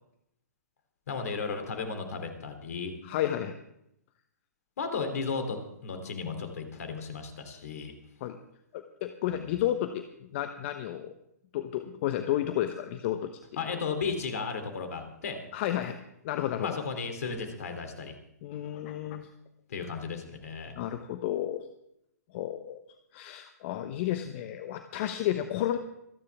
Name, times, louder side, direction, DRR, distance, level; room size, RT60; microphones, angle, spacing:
voice 1, 1.1-2.9 4.8-7.9 9.3-9.5 13.6-15.4 16.6-18.1 19.7-20.7, left 5 dB, 60° left, 6 dB, 3.1 m, -34 dB
voice 2, 3.0-3.5 8.2-8.4 8.7-10.0 10.3-11.1 11.5-13.3 15.5-16.0 16.2-16.8 18.4-19.3 20.8-21.6 22.3-22.8 23.1-25.8, left 12 dB, 40° left, 8 dB, 1.0 m, -31 dB
26.5 x 9.8 x 3.5 m, 0.78 s
figure-of-eight pair, 120°, 9 cm